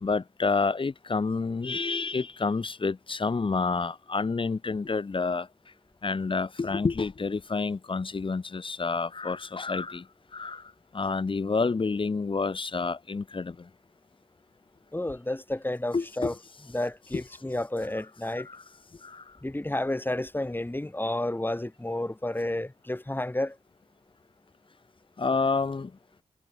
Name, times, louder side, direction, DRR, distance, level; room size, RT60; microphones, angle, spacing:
voice 1, 0.0-5.5 6.0-10.0 10.3-10.6 10.9-13.5 15.9-16.4 17.1-17.2 18.5-18.6 19.0-19.2 25.2-25.9, left 4 dB, 40° left, 1.2 m, -29 dB
voice 2, 14.9-16.3 16.7-18.5 19.4-23.5, left 1 dB, 15° left, 3.2 m, -31 dB
supercardioid pair, 45°, 13 cm